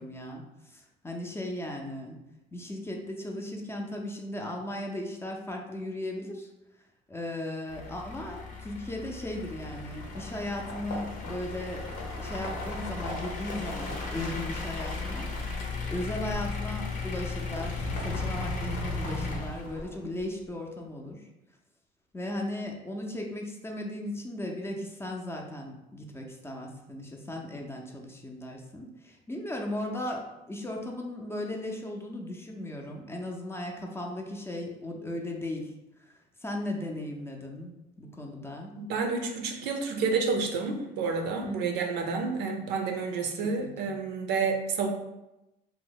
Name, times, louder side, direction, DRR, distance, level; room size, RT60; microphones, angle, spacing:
voice 1, 0.0-2.2 2.5-6.5 7.1-21.3 22.1-35.7 36.0-38.7 41.4-41.8 43.4-43.5 43.8-43.9, left 1 dB, 15° left, 1 dB, 0.5 m, -37 dB
sound 1, 7.7-20.0, left 4 dB, 55° left, 0.6 m, -37 dB
sound 2, 9.4-20.2, left 1 dB, 85° left, 0.9 m, -39 dB
voice 2, 38.8-44.9, right 4 dB, 85° right, 3 dB, 0.5 m, -29 dB
2.7 x 2.1 x 3.9 m, 0.94 s
cardioid pair, 110°, 17 cm